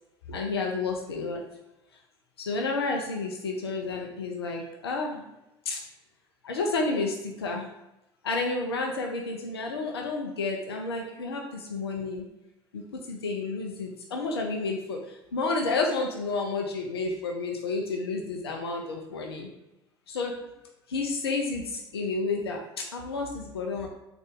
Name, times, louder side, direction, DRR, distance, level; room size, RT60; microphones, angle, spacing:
voice 1, 0.3-1.4 2.4-5.3 5.7-5.8 6.4-7.7 8.2-12.3 12.7-19.5 20.1-20.4 20.9-23.9, left 3 dB, 75° left, 1 dB, 0.5 m, -31 dB
3.8 x 2.5 x 3.4 m, 0.92 s
figure-of-eight pair, 65°, 13 cm